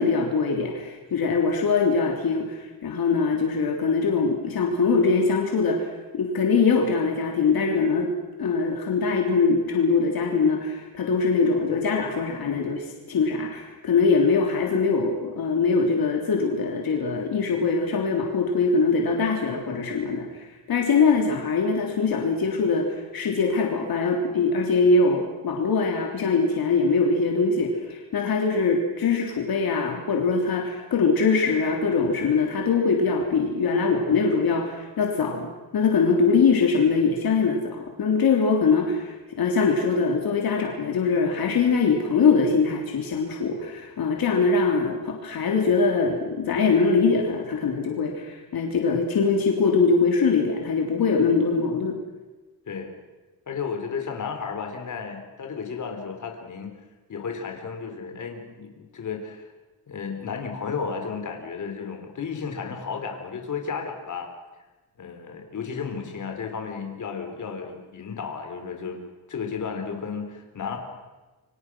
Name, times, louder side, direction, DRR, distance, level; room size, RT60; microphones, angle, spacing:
voice 1, 0.0-8.1 8.4-35.5 35.7-52.0, left 4 dB, 65° left, 1 dB, 3.4 m, -22 dB
voice 2, 53.5-56.7 57.1-59.5 59.9-64.3 65.0-69.0 69.3-70.8, left 5 dB, 50° left, 4 dB, 3.9 m, -33 dB
28.5 x 25.0 x 6.3 m, 1.2 s
wide cardioid pair, 135°, 38 cm